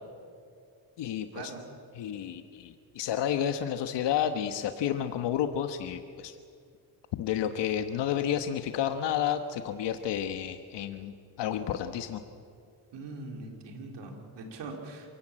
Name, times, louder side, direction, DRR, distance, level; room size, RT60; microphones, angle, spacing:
voice 1, 1.0-1.5 1.9-6.4 7.1-12.2, left 9 dB, 85° left, 8 dB, 1.2 m, -31 dB
voice 2, 12.9-15.1, right 3 dB, 85° right, 2 dB, 4.2 m, -41 dB
28.0 x 16.5 x 8.9 m, 2.3 s
cardioid pair, 85°, 41 cm